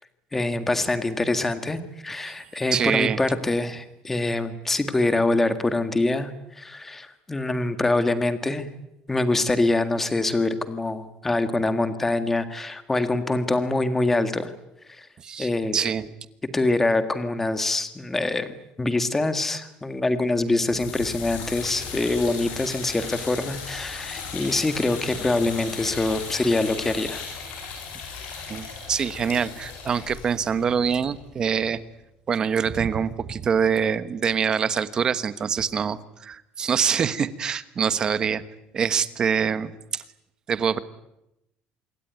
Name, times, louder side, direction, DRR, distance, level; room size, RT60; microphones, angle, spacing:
voice 1, 0.3-8.7 9.1-14.5 14.9-15.1 15.4-15.8 16.5-27.3, left 2 dB, 10° left, 10 dB, 1.8 m, -25 dB
voice 2, 2.7-3.2 15.2-16.1 28.5-31.8 32.3-38.4 38.7-40.0 40.5-40.8, right 7 dB, 25° right, 14 dB, 1.2 m, -25 dB
sound 1, 20.6-31.7, left 6 dB, 60° left, 7.3 m, -37 dB
26.5 x 23.0 x 9.5 m, 0.87 s
cardioid pair, 170°, 3 cm